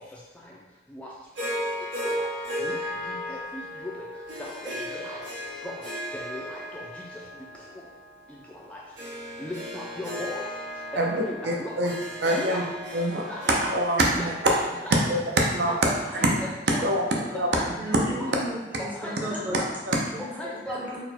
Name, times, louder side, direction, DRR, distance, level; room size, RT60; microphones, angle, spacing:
Harp, 1.4-15.7, equal, 80° right, 1.2 m, -36 dB
voice 1, 3.1-3.9 4.4-5.2 5.6-5.7 6.1-6.8 8.7-8.8 9.4-10.4 10.9-11.7 12.3-12.6 12.9-13.4 14.1-15.0 15.7-16.9 17.5-17.7 18.8-19.8 20.4-20.8, left 1 dB, 5° left, -4 dB, 0.3 m, -37 dB
voice 2, 10.9-11.9 12.2-12.6 12.9-14.5 14.9-15.7 16.2-16.4 16.8-17.7 18.2-18.3 19.5-20.0, right 1 dB, 65° right, 0 dB, 0.6 m, -25 dB
voice 3, 17.8-18.9 19.2-19.6 20.1-20.3 20.7-21.0, right 1 dB, 10° right, -5 dB, 0.7 m, -34 dB
4.4 x 2.2 x 4.2 m, 1.1 s
head